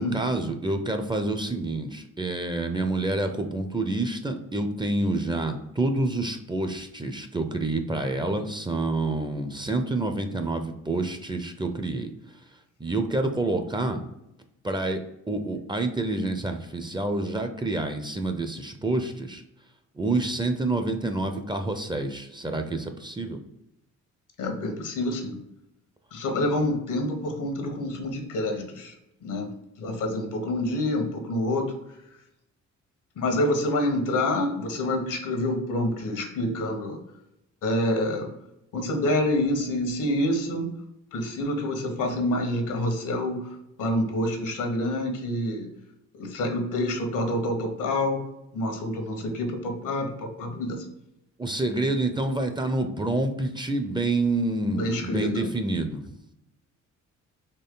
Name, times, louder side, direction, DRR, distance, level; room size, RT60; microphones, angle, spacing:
voice 1, 0.0-12.1 12.8-14.0 14.6-19.4 20.0-23.4 51.4-56.0, right 2 dB, 15° right, 6 dB, 0.6 m, -28 dB
voice 2, 24.4-25.4 26.1-28.9 29.2-29.5 29.8-31.7 33.2-37.0 37.6-38.3 38.7-40.7 41.1-43.5 43.8-45.7 46.2-48.2 48.5-50.8 54.7-55.5, left 1 dB, 75° left, 4 dB, 1.2 m, -27 dB
4.5 x 3.1 x 3.8 m, 0.85 s
cardioid pair, 85°, 31 cm